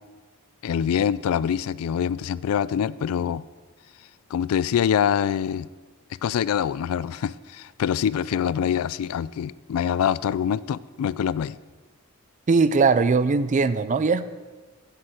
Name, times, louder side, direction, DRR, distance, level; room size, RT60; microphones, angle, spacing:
voice 1, 0.6-3.4 4.3-5.7 6.2-11.6, left 8 dB, 75° left, 20 dB, 0.3 m, -25 dB
voice 2, 12.5-14.3, right 4 dB, 35° right, 14 dB, 0.4 m, -20 dB
8.9 x 7.8 x 6.2 m, 1.3 s
head